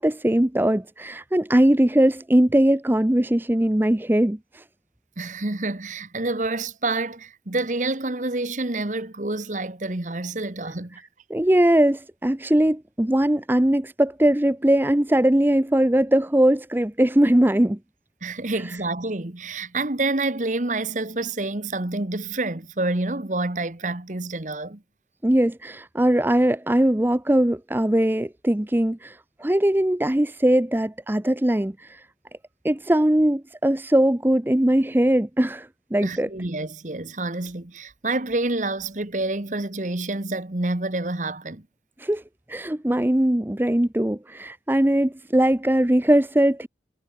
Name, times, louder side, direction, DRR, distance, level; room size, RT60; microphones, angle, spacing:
voice 1, 0.0-4.6 11.3-17.8 25.2-32.0 32.6-36.3 42.0-42.2 42.5-46.7, right 1 dB, 10° right, 0.6 m, -20 dB
voice 2, 5.2-11.0 18.2-24.8 36.0-41.7, right 2 dB, 45° right, 1.3 m, -28 dB
head